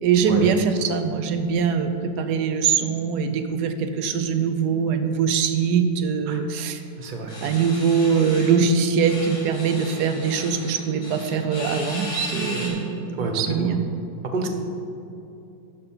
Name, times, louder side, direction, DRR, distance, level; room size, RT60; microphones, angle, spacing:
voice 1, 0.0-6.8 7.4-13.8 14.4-14.5, right 6 dB, 70° right, 8 dB, 1.1 m, -22 dB
voice 2, 7.0-7.4 13.2-13.7 14.3-14.5, right 3 dB, 45° right, 3 dB, 0.6 m, -28 dB
sound 1, 7.3-8.6 9.0-12.7, left 2 dB, 85° left, 2.6 m, -36 dB
12.0 x 4.6 x 5.5 m, 2.8 s
omnidirectional pair, 2.0 m